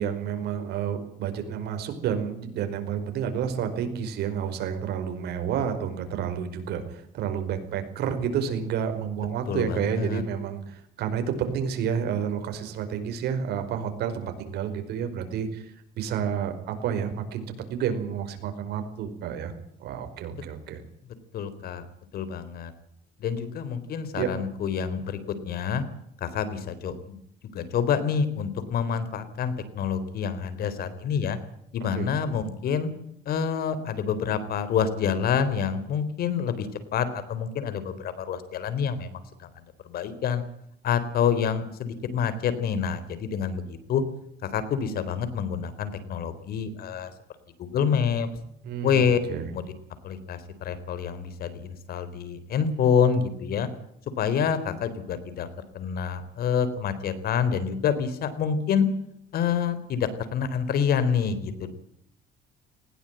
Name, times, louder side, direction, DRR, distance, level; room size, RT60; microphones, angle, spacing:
voice 1, 0.0-19.5 19.8-20.8 24.2-24.3 32.0-32.1 48.6-49.4, right 8 dB, 75° right, 7 dB, 5.0 m, -30 dB
voice 2, 9.5-10.2 20.3-20.4 21.3-21.9 22.1-22.7 23.2-25.2 25.4-25.8 26.2-27.2 27.5-31.4 31.7-32.9 33.3-39.5 39.8-40.4 40.8-44.0 44.4-47.1 47.6-48.3 48.8-49.2 49.5-49.7 50.0-53.7 54.2-55.5 55.7-58.9 59.3-61.7, left 7 dB, 65° left, 13 dB, 3.9 m, -27 dB
19.5 x 17.5 x 9.1 m, 0.73 s
cardioid pair, 110°, 17 cm